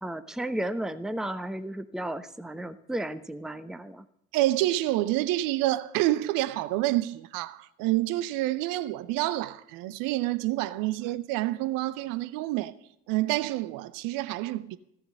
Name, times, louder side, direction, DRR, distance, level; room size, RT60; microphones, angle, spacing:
voice 1, 0.0-4.0, right 1 dB, ahead, 0.8 m, -33 dB
voice 2, 4.3-12.7 13.1-14.8, right 16 dB, 65° right, 0.8 m, -28 dB
15.0 x 6.9 x 9.0 m
hypercardioid pair, 50°, 35 cm